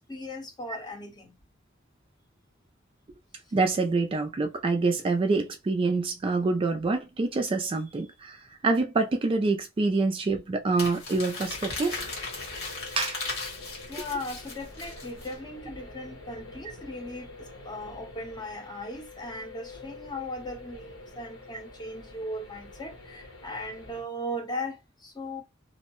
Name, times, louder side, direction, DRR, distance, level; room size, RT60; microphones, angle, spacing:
voice 1, 0.1-1.3 11.7-11.8 13.9-25.4, left 1 dB, 20° left, 0.7 m, -38 dB
voice 2, 3.5-8.4 8.6-12.1 13.0-13.2, right 3 dB, 25° right, 0.3 m, -26 dB
Crumpling crinkling, 10.8-15.3, left 3 dB, 85° left, 1.6 m, -37 dB
sound 1, 11.4-24.0, left 2 dB, 70° left, 1.0 m, -46 dB
2.6 x 2.1 x 2.9 m
head